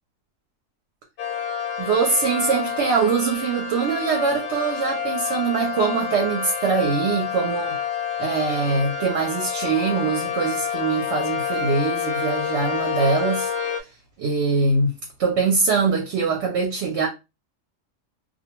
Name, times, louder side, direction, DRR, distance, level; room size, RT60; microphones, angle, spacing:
sound 1, 1.2-13.8, left 7 dB, 75° left, 1.0 m, -28 dB
voice 1, 1.8-7.8 8.2-13.5 14.2-17.1, right 4 dB, 65° right, 0.8 m, -23 dB
2.3 x 2.2 x 2.9 m
omnidirectional pair, 1.3 m